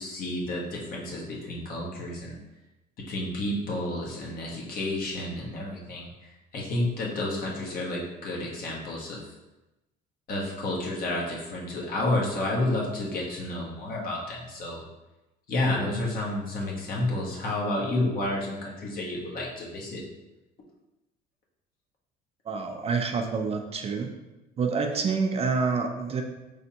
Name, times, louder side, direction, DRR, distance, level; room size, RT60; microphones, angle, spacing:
voice 1, 0.0-2.4 3.0-6.1 6.5-9.2 10.3-14.8 15.5-20.0, left 1 dB, 60° left, -3 dB, 1.2 m, -30 dB
voice 2, 22.5-24.1 24.6-26.2, right 5 dB, 35° right, 4 dB, 0.5 m, -27 dB
4.2 x 3.4 x 2.8 m, 1.0 s
cardioid pair, 110°, 17 cm